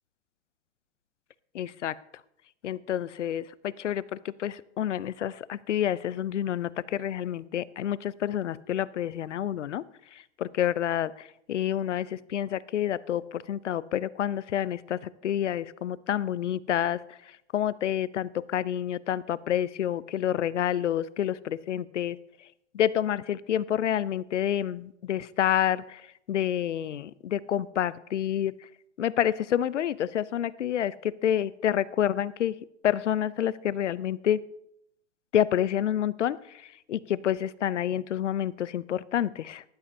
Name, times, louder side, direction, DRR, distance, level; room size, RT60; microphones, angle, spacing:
voice 1, 1.5-2.0 2.6-9.8 10.1-17.0 17.5-22.2 22.7-26.0 26.3-28.5 29.0-32.6 32.8-34.4 35.3-39.6, left 10 dB, 80° left, 20 dB, 0.5 m, -28 dB
15.5 x 11.5 x 2.7 m, 0.79 s
figure-of-eight pair, 105°, 35 cm